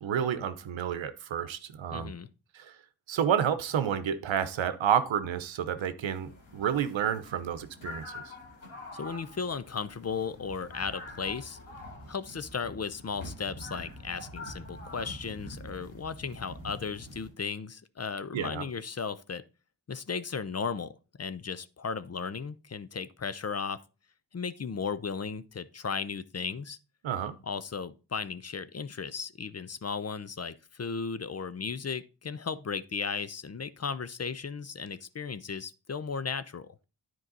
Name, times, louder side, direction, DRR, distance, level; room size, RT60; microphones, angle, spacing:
voice 1, 0.0-2.1 2.5-2.7 3.1-8.0 18.3-18.6 27.0-27.4, right 8 dB, 75° right, 0.9 m, -30 dB
voice 2, 1.9-2.3 8.9-11.6 12.1-19.4 19.9-20.9 21.2-23.8 24.3-26.8 27.4-36.7, left 5 dB, 35° left, 0.6 m, -35 dB
sound 1, 6.1-17.3, left 1 dB, 85° left, 2.3 m, -45 dB
9.9 x 4.7 x 3.9 m
cardioid pair, 45°, 46 cm